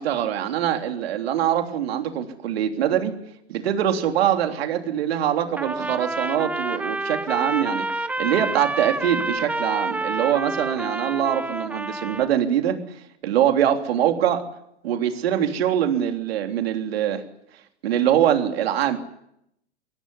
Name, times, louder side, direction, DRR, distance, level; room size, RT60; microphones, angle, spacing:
voice 1, 0.0-3.1 3.5-12.8 13.2-14.4 14.8-17.2 17.8-19.0, right 10 dB, 65° right, 5 dB, 3.4 m, -23 dB
Trumpet, 5.6-12.3, right 2 dB, 5° right, 1.0 m, -28 dB
23.5 x 17.5 x 9.9 m, 0.78 s
hypercardioid pair, 100°, 33 cm